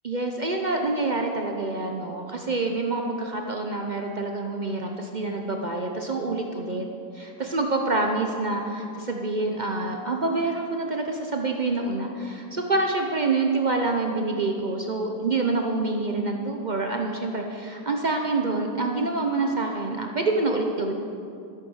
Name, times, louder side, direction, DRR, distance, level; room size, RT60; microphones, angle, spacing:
voice 1, 0.0-6.9 7.1-20.9, right 3 dB, 75° right, 2 dB, 0.4 m, -27 dB
14.0 x 8.4 x 6.4 m, 2.4 s
omnidirectional pair, 2.1 m